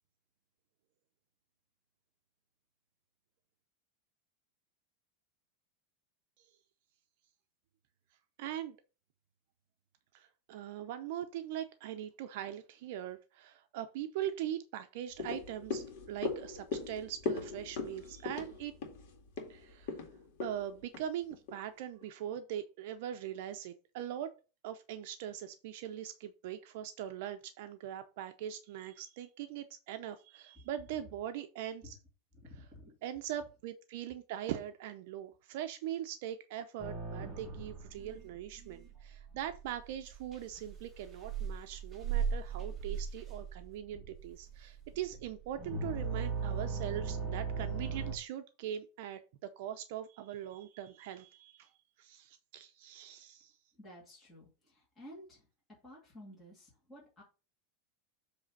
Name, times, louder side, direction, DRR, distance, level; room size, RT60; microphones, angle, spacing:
voice 1, 8.4-8.8 10.1-18.7 19.5-20.0 20.4-24.3 24.6-32.0 32.6-32.7 33.0-51.7 52.0-53.5, right 11 dB, 55° right, 9 dB, 0.6 m, -41 dB
sound 1, 15.1-21.6 22.0-22.1, left 4 dB, 50° left, 2.1 m, -40 dB
voice 2, 32.4-32.9 53.8-54.5 55.0-55.4 55.8-57.2, equal, 10° left, -7 dB, 2.5 m, -52 dB
sound 2, 36.8-48.2, right 5 dB, 10° right, 1.3 m, -38 dB
7.6 x 3.3 x 5.2 m, 0.32 s
supercardioid pair, 170°, 0 cm